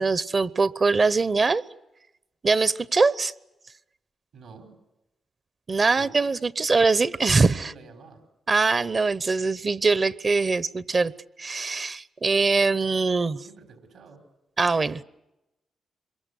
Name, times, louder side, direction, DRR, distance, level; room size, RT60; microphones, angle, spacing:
voice 1, 0.0-1.6 2.4-3.3 5.7-7.7 8.5-11.1 11.4-13.4 14.6-15.0, right 4 dB, 40° right, 0.9 m, -22 dB
voice 2, 4.3-4.7 5.9-6.2 7.4-8.2 13.4-14.2, right 4 dB, 80° right, 4.9 m, -47 dB
26.0 x 23.0 x 8.4 m
cardioid pair, 65°, 0 cm